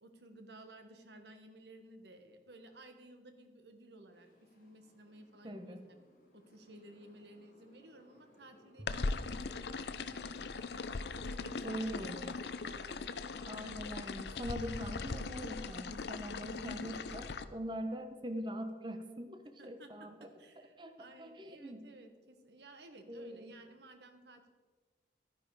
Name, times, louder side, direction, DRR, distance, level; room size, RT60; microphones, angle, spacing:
voice 1, 0.0-6.0 6.3-13.3 19.6-24.5, right 1 dB, 75° right, 6 dB, 1.3 m, -56 dB
Motorcycle, 4.1-13.9, left 1 dB, 50° left, 2.5 m, -64 dB
voice 2, 5.4-5.9 11.6-12.4 13.4-20.3 20.8-20.9 21.2-21.8 23.1-23.5, equal, 25° right, 7 dB, 0.8 m, -42 dB
sound 1, 8.9-17.4, left 4 dB, 75° left, 0.6 m, -40 dB
11.5 x 10.0 x 4.7 m, 1.4 s
head